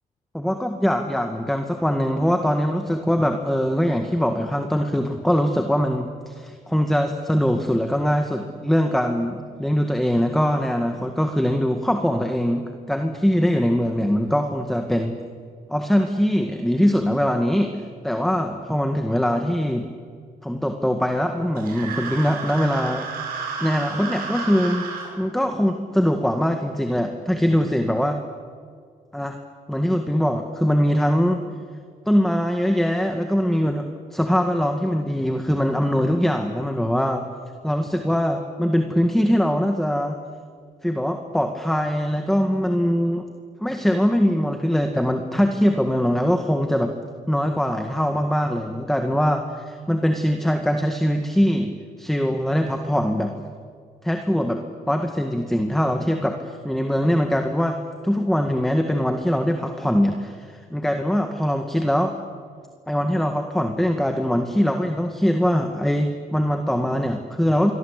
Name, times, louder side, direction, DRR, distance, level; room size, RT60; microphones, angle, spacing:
voice 1, 0.3-15.2 15.7-19.9 20.4-23.1 23.6-24.9 25.2-28.2 29.1-29.4 29.7-31.4 32.1-37.3 37.6-40.2 40.8-43.2 43.6-46.9 47.3-53.3 54.0-62.1 62.9-67.7, equal, ahead, 5 dB, 1.8 m, -22 dB
sound 1, 21.6-25.1, right 5 dB, 80° right, 7.9 m, -32 dB
28.0 x 22.5 x 8.3 m, 2.1 s
cardioid pair, 125°, 15 cm